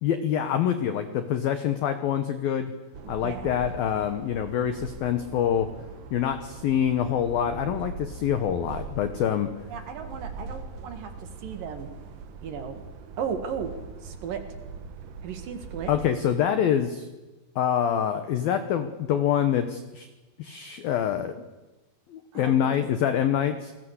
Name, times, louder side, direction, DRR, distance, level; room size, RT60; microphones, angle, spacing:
voice 1, 0.0-2.7 3.1-5.7 6.1-9.5 15.9-17.1 17.6-20.1 20.4-21.3 22.1-23.7, left 9 dB, 80° left, 9 dB, 2.1 m, -25 dB
sound 1, 2.9-16.1, right 5 dB, 70° right, 2.1 m, -41 dB
voice 2, 3.2-3.6 9.7-11.9 12.4-12.8 13.2-13.7 14.0-14.4 15.2-15.9 22.3-22.5, right 7 dB, 55° right, 7 dB, 2.8 m, -35 dB
28.5 x 20.0 x 8.2 m, 1.1 s
omnidirectional pair, 6.0 m